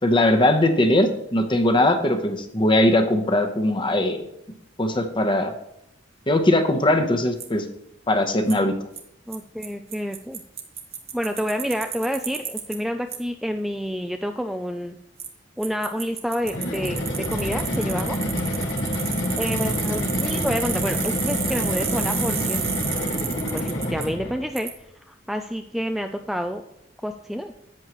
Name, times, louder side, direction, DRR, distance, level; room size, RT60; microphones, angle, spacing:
voice 1, 0.0-4.3 4.8-5.5 6.3-7.7 8.1-8.7, left 1 dB, 25° left, 6 dB, 1.0 m, -20 dB
Bicycle, 7.4-7.5 8.5-8.6 9.0-9.1 9.3-9.4 9.6-9.7 9.9-12.8 13.1-13.2 15.2-15.3 15.6-24.1 24.6-24.7, right 7 dB, 35° right, 1.1 m, -31 dB
voice 2, 9.3-10.4 11.1-15.0 15.6-18.2 19.4-22.7 23.5-24.7 25.1-26.6 27.0-27.5, equal, ahead, 5 dB, 0.4 m, -29 dB
sound 1, 16.4-24.5, equal, 75° left, 1.8 m, -27 dB
10.5 x 8.2 x 3.1 m, 0.80 s
head